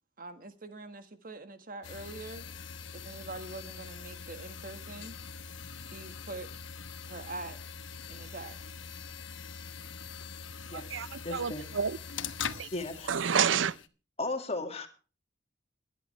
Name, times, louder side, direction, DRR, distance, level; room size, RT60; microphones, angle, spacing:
voice 1, 0.2-2.4 2.9-5.2 5.8-6.5 7.1-7.6 8.1-8.6, right 2 dB, 50° right, 1.6 m, -44 dB
sound 1, 1.8-13.9, left 6 dB, 85° left, 1.1 m, -43 dB
voice 2, 10.7-12.0 12.6-12.7 13.1-13.7, right 7 dB, 90° right, 0.6 m, -29 dB
voice 3, 11.2-11.6 12.7-13.1 14.2-14.9, left 2 dB, 35° left, 2.2 m, -35 dB
22.5 x 10.5 x 3.3 m
head